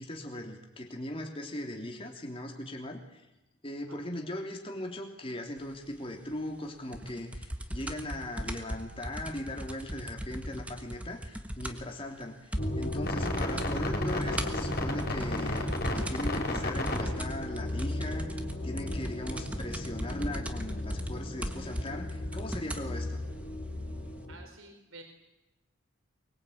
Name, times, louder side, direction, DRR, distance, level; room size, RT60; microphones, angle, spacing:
voice 1, 0.0-3.2 3.6-18.3 18.6-23.2, left 1 dB, 25° left, 2 dB, 3.2 m, -39 dB
sound 1, 6.9-12.0 12.2-12.3 12.5-13.0 13.3-13.7 14.1-22.9 23.7-23.8, equal, 5° right, 1.5 m, -38 dB
sound 2, 12.6-24.4, left 1 dB, 45° left, 5.4 m, -34 dB
voice 2, 24.3-25.0, right 2 dB, 75° right, 4 dB, 4.3 m, -50 dB
24.0 x 22.0 x 8.8 m, 0.94 s
head